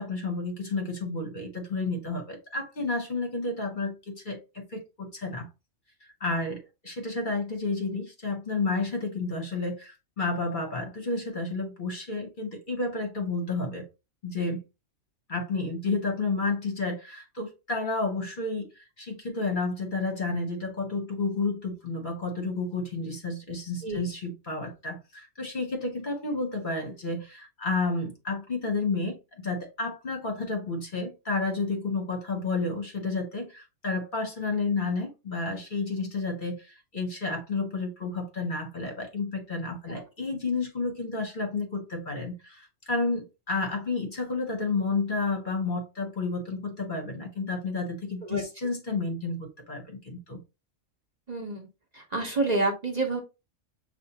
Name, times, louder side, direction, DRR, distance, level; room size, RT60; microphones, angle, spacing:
voice 1, 0.0-5.5 6.2-13.9 14.2-14.6 15.3-50.4, left 3 dB, 45° left, 0.9 m, -31 dB
voice 2, 51.3-51.6 51.9-53.2, right 2 dB, 35° right, 0.9 m, -28 dB
6.7 x 2.5 x 2.8 m
omnidirectional pair, 1.3 m